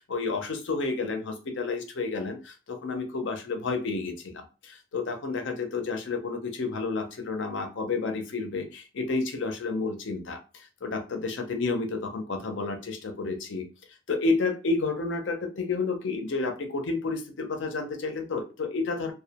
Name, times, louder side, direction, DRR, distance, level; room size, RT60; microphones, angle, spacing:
voice 1, 0.0-13.7 14.1-19.1, left 3 dB, 70° left, 5 dB, 0.5 m, -30 dB
2.2 x 2.1 x 2.8 m, 0.31 s
head